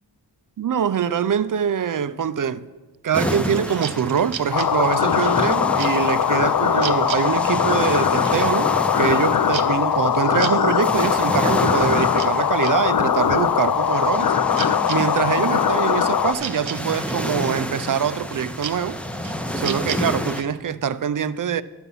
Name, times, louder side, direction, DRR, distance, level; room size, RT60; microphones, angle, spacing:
voice 1, 0.6-2.6 3.0-8.7 9.0-14.3 14.9-19.0 19.6-21.6, right 8 dB, 45° right, 0.4 m, -24 dB
sound 1, 3.1-20.4, equal, 5° left, 0.6 m, -30 dB
sound 2, 3.3-12.8 13.1-20.5, right 8 dB, 85° right, 0.7 m, -37 dB
sound 3, 4.5-16.3, left 8 dB, 50° left, 0.6 m, -21 dB
11.0 x 7.0 x 5.5 m
wide cardioid pair, 70°, 45 cm